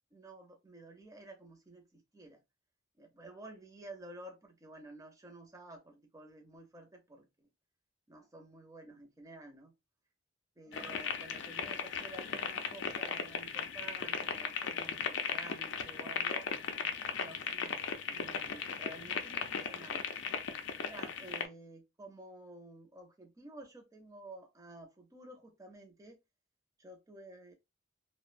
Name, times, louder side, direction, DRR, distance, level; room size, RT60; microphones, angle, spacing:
voice 1, 0.1-2.4 3.0-7.5 8.1-9.7 10.6-16.5 17.1-17.8 18.1-20.1 20.8-26.2 26.8-27.5, right 2 dB, 15° right, 0.5 m, -52 dB
sound 1, 10.7-21.5, left 6 dB, 60° left, 0.4 m, -37 dB
2.6 x 2.0 x 2.4 m
head